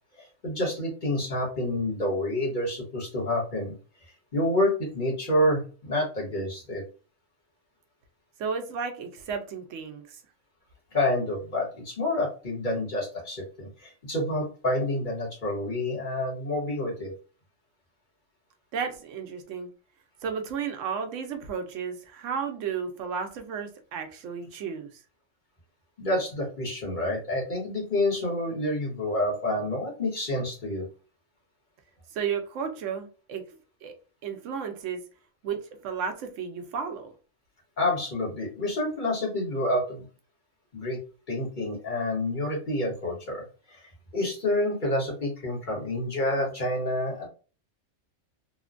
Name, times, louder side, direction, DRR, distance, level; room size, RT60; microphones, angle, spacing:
voice 1, 0.2-3.8 4.3-6.8 10.9-17.1 26.0-30.9 37.8-40.0 40.7-41.0 41.3-43.8 44.1-47.3, left 1 dB, 40° left, 1.1 m, -28 dB
voice 2, 8.4-10.2 18.7-19.7 20.2-25.0 32.1-33.4 33.8-33.9 34.2-35.0 35.4-37.1, right 6 dB, 80° right, 0.9 m, -33 dB
3.2 x 2.1 x 2.4 m
omnidirectional pair, 1.3 m